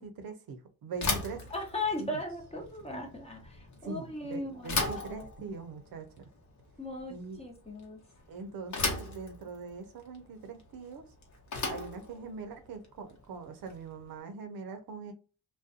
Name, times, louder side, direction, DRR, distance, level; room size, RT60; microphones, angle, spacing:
voice 1, 0.0-1.4 2.0-2.2 3.8-6.3 7.1-7.4 8.3-11.0 11.7-15.1, right 4 dB, 65° right, 0.7 m, -42 dB
Bicycle / Thump thud, 0.9-14.0, left 3 dB, 45° left, 0.9 m, -38 dB
voice 2, 1.5-5.5 6.8-8.0, left 2 dB, 15° left, 0.9 m, -38 dB
2.4 x 2.2 x 2.5 m
cardioid pair, 75°, 38 cm